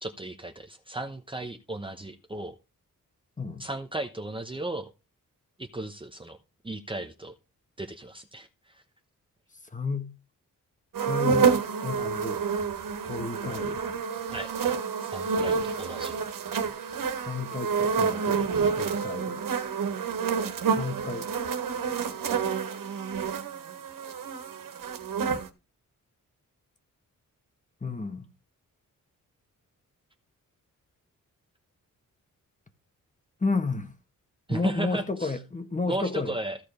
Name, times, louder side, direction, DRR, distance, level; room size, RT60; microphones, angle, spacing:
voice 1, 0.0-2.5 3.6-4.9 5.6-6.4 6.6-7.3 7.8-8.8 14.3-14.5 15.0-16.2 34.5-35.4 35.9-36.6, right 2 dB, 15° right, 1.0 m, -35 dB
voice 2, 9.7-10.1 11.0-11.5 11.8-12.4 13.1-13.8 17.2-18.5 18.8-19.4 20.7-21.3 27.8-28.3 33.4-33.9 34.5-36.4, left 3 dB, 25° left, 1.5 m, -31 dB
sound 1, 10.9-25.5, right 6 dB, 80° right, 1.8 m, -28 dB
15.0 x 5.1 x 5.0 m
wide cardioid pair, 155°, 32 cm